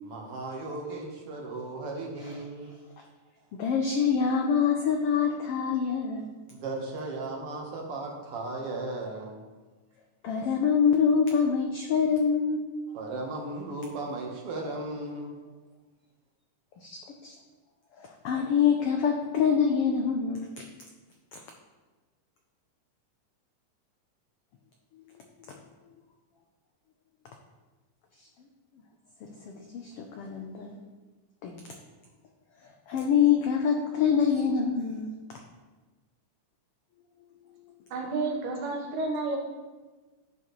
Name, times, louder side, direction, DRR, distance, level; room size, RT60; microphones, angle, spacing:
voice 1, 0.0-2.7 6.5-9.4 12.9-15.3, right 2 dB, 55° right, 0 dB, 1.9 m, -36 dB
voice 2, 3.6-6.3 10.2-12.7 16.8-17.3 18.0-20.5 21.3-21.4 29.4-30.8 31.4-31.6 32.9-35.1, left 6 dB, 85° left, 2 dB, 1.3 m, -25 dB
voice 3, 37.9-39.4, right 3 dB, 80° right, 1 dB, 2.8 m, -30 dB
11.0 x 7.3 x 3.1 m, 1.3 s
omnidirectional pair, 3.5 m